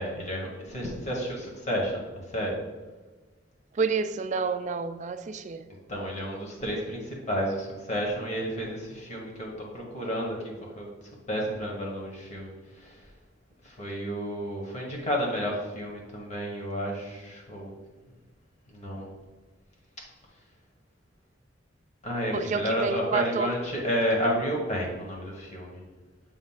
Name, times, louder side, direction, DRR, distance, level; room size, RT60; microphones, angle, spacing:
voice 1, 0.0-2.6 5.9-10.9 11.3-13.1 13.6-17.7 18.7-19.1 22.0-25.8, equal, 35° left, -1 dB, 1.4 m, -31 dB
voice 2, 3.7-5.6 22.3-23.5, right 5 dB, 40° right, 9 dB, 0.4 m, -29 dB
7.1 x 2.6 x 5.7 m, 1.3 s
head